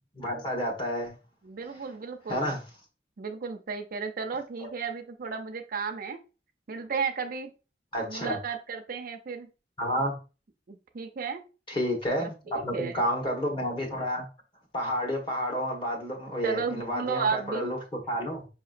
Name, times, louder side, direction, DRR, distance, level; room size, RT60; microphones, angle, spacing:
voice 1, 0.1-1.2 2.3-2.6 7.9-8.4 9.8-10.1 11.7-14.2 14.7-18.5, equal, 30° left, 1 dB, 1.2 m, -30 dB
voice 2, 1.4-2.6 3.2-6.2 6.7-7.5 8.0-9.5 10.7-11.4 12.1-13.0 16.4-17.7, right 5 dB, 55° right, 6 dB, 0.5 m, -34 dB
5.6 x 2.9 x 2.5 m, 0.32 s
head